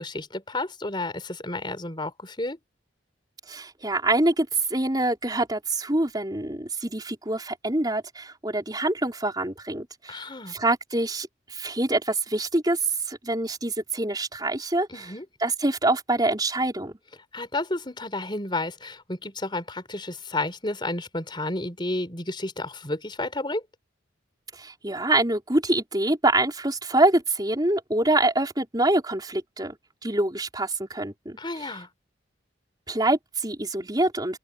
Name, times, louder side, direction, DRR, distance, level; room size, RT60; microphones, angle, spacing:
voice 1, 0.0-2.6 10.1-10.6 14.9-15.2 17.3-23.6 31.4-31.9, left 2 dB, 25° left, 4.4 m, -31 dB
voice 2, 3.5-12.8 13.1-15.0 15.4-16.9 24.5-29.8 30.0-31.7 32.9-34.4, right 2 dB, 20° right, 4.5 m, -25 dB
open air
head